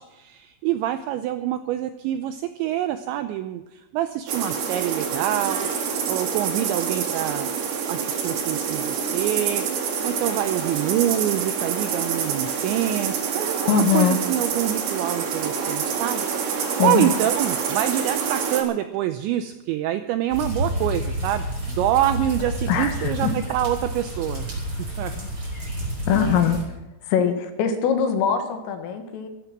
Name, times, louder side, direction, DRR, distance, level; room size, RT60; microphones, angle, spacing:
voice 1, 0.0-7.5 7.9-25.2 26.3-26.5, right 12 dB, 85° right, 9 dB, 2.6 m, -26 dB
sound 1, 4.3-18.6, right 6 dB, 60° right, 3.7 m, -27 dB
voice 2, 13.7-14.2 16.8-17.1 22.7-23.3 25.2-25.3 26.1-26.6 27.1-29.3, left 7 dB, 75° left, 6 dB, 4.2 m, -22 dB
sound 2, 20.3-26.6, right 1 dB, 25° right, 5.1 m, -29 dB
14.5 x 14.0 x 6.0 m, 1.0 s
omnidirectional pair, 6.0 m